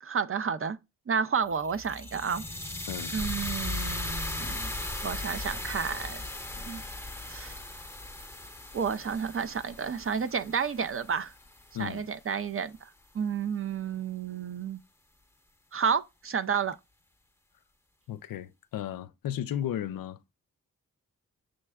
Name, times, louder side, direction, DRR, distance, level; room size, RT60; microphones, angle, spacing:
voice 1, 0.0-0.8 1.1-2.4 3.1-4.7 5.0-6.2 6.6-6.8 7.3-7.5 8.7-11.3 11.8-12.8 13.1-14.8 15.7-16.8, right 6 dB, 40° right, 0.5 m, -31 dB
sound 1, 1.5-11.6, left 2 dB, 5° left, 0.8 m, -37 dB
voice 2, 18.1-20.2, left 10 dB, 75° left, 0.5 m, -34 dB
6.3 x 3.2 x 2.3 m
cardioid pair, 50°, 34 cm